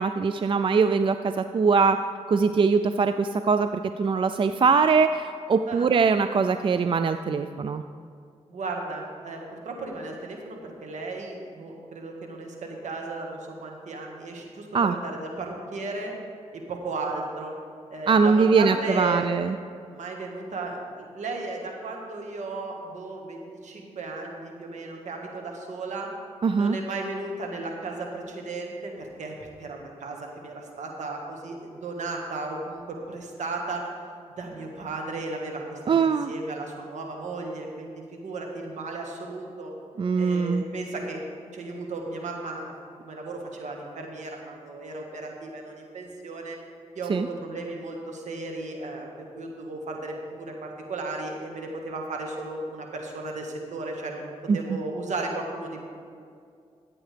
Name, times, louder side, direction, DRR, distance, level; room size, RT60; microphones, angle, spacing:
voice 1, 0.0-2.0 2.3-3.7 4.0-7.8 14.7-15.0 18.1-19.6 26.4-26.8 35.9-36.3 40.0-40.6 47.1-47.3 54.5-54.8, right 5 dB, 40° right, 10 dB, 0.4 m, -22 dB
voice 2, 8.5-16.1 16.5-17.6 17.9-19.3 19.9-26.1 26.5-33.9 34.4-39.7 40.2-41.2 41.5-42.7 43.0-46.6 46.9-54.3 54.5-55.8, right 3 dB, 70° right, 1 dB, 1.6 m, -35 dB
14.5 x 8.4 x 3.4 m, 2.3 s
cardioid pair, 55°, 13 cm